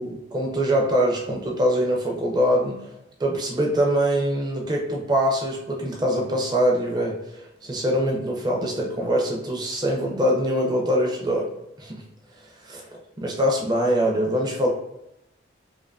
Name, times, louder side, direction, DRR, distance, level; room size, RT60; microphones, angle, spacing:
voice 1, 0.0-2.9 3.2-11.5 11.8-12.0 12.6-12.9 13.2-14.7, equal, 20° right, 0 dB, 0.4 m, -23 dB
2.5 x 2.3 x 2.3 m, 0.86 s
head